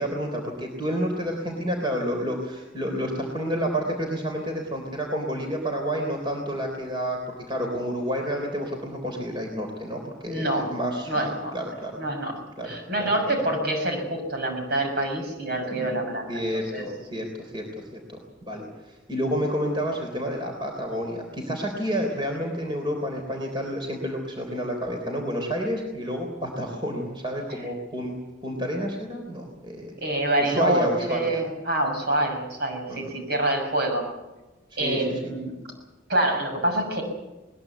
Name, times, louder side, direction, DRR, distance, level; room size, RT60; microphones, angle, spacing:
voice 1, 0.0-12.0 12.6-13.4 15.7-15.9 16.3-28.1 28.4-30.0 30.4-31.4 32.9-33.0 34.8-35.3, equal, 25° right, 2 dB, 3.6 m, -30 dB
voice 2, 10.3-10.7 11.1-11.5 12.0-16.8 30.0-34.1 34.8-35.5 36.1-37.0, right 1 dB, 55° right, 3 dB, 6.3 m, -26 dB
21.0 x 20.5 x 8.2 m, 1.0 s
head